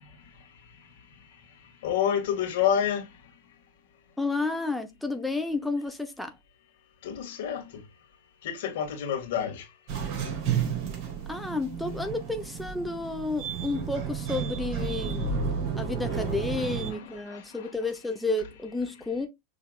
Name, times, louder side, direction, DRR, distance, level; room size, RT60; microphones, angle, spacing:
voice 1, 1.8-3.1 7.0-7.6 8.4-9.7 16.6-17.7, left 9 dB, 70° left, 1.9 m, -29 dB
voice 2, 4.2-6.3 11.3-15.4 15.8-19.3, left 3 dB, 5° left, 0.8 m, -31 dB
sound 1, 9.9-16.9, right 6 dB, 45° right, 3.5 m, -32 dB
6.4 x 3.5 x 2.4 m
supercardioid pair, 125°, 0 cm